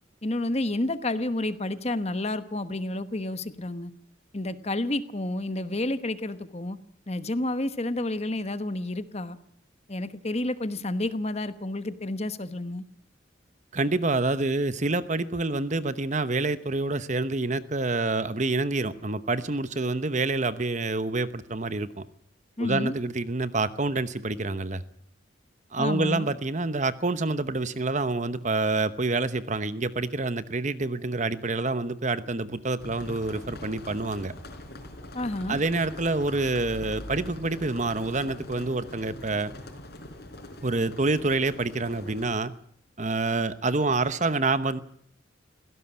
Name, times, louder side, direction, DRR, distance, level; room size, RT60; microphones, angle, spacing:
voice 1, 0.2-3.9 4.3-6.8 7.1-9.4 9.9-12.8 22.6-23.0 25.8-26.3 35.1-35.6, left 1 dB, 30° left, 1.1 m, -30 dB
voice 2, 13.7-22.0 22.6-24.8 25.7-34.3 35.5-39.5 40.6-42.5 43.0-44.8, right 3 dB, 35° right, 0.9 m, -27 dB
sound 1, 32.8-42.3, left 1 dB, 55° left, 4.4 m, -42 dB
18.5 x 17.0 x 8.7 m
head